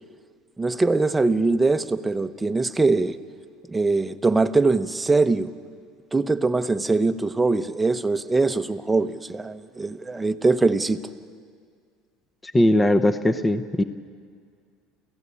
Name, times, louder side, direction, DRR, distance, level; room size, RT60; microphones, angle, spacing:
voice 1, 0.6-3.2 3.7-5.5 6.1-11.0, right 3 dB, 10° right, 10 dB, 0.9 m, -22 dB
voice 2, 12.4-13.8, left 1 dB, 15° left, 10 dB, 0.9 m, -20 dB
28.5 x 16.0 x 8.5 m, 2.1 s
supercardioid pair, 120°, 0 cm